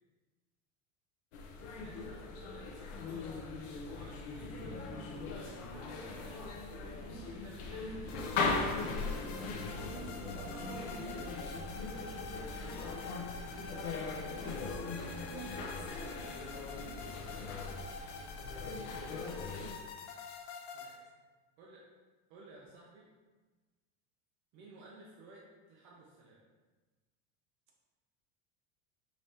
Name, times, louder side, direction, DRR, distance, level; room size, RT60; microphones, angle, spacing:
sound 1, 1.3-19.7, left 3 dB, 50° left, 0.6 m, -39 dB
voice 1, 1.8-6.4 6.8-9.0 9.7-10.1 12.4-12.9 16.2-18.1 19.0-19.4 20.7-21.1 21.6-21.8 22.3-23.1 24.5-25.4 25.7-26.4, right 2 dB, 35° right, -5 dB, 0.6 m, -57 dB
sound 2, 8.1-21.0, left 4 dB, 80° left, 0.8 m, -47 dB
voice 2, 9.8-11.8 13.6-15.4 21.0-21.1, right 2 dB, 55° right, -1 dB, 1.0 m, -52 dB
4.9 x 3.2 x 2.8 m, 1.3 s
cardioid pair, 175°, 35 cm